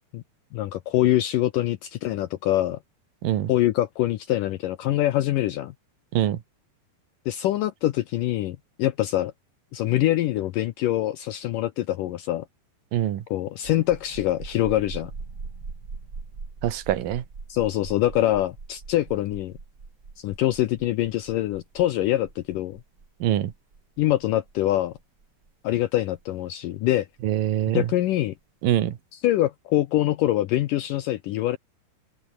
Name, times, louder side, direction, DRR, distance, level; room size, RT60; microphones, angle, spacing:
voice 1, 0.5-2.8 3.5-5.7 7.3-9.3 9.7-12.5 13.3-15.1 17.5-19.5 20.2-22.8 24.0-24.9 25.6-27.1 27.7-28.3 29.1-31.6, left 14 dB, 80° left, 2.0 m, -24 dB
voice 2, 12.9-13.2 16.6-17.2 23.2-23.5 27.2-27.9 28.6-29.0, right 11 dB, 60° right, 3.2 m, -24 dB
sound 1, 13.6-26.9, right 4 dB, 25° right, 3.2 m, -41 dB
omnidirectional pair, 4.7 m